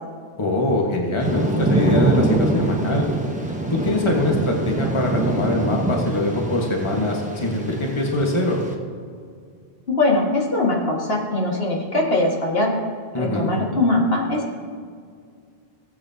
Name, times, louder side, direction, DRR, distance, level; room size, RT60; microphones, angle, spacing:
voice 1, 0.4-3.0 3.7-8.6 13.1-13.6, left 1 dB, 30° left, 0 dB, 1.4 m, -23 dB
Thunder / Rain, 1.2-8.8, right 2 dB, 10° right, 0.9 m, -24 dB
voice 2, 9.9-12.8 13.2-14.5, left 2 dB, 70° left, -2 dB, 2.0 m, -21 dB
17.5 x 8.5 x 2.8 m, 2.2 s
omnidirectional pair, 1.0 m